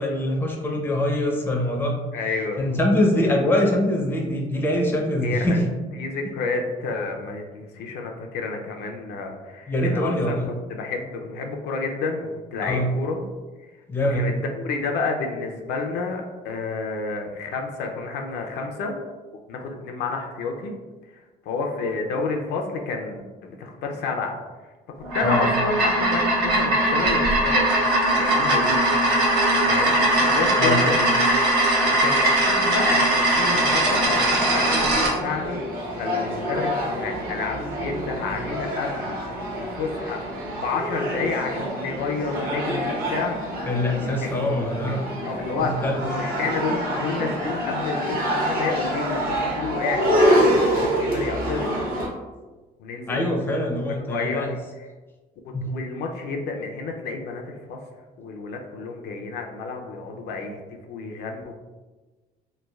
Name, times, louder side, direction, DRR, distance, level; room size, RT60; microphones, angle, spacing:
voice 1, 0.0-1.9 2.6-5.6 9.7-10.5 12.6-12.9 13.9-14.3 25.2-25.5 30.6-30.9 43.6-45.0 45.6-46.0 53.1-54.5 55.5-55.7, left 1 dB, 10° left, 1 dB, 0.4 m, -23 dB
voice 2, 2.1-2.6 5.2-5.6 6.0-10.4 10.7-13.2 14.0-19.0 19.5-20.7 21.1-24.3 25.1-27.7 28.2-29.0 29.6-31.1 31.8-35.6 36.0-39.2 39.6-40.2 40.5-43.7 44.1-44.3 44.9-45.0 45.2-51.7 52.8-53.2 53.9-54.9 55.4-57.8 58.2-61.5, left 4 dB, 75° left, 2 dB, 0.4 m, -30 dB
sound 1, 25.0-35.1, right 1 dB, 80° right, 0.8 m, -20 dB
sound 2, 33.5-52.1, equal, 55° right, 1.0 m, -26 dB
3.1 x 2.2 x 2.2 m, 1.3 s
cardioid pair, 110°, 17 cm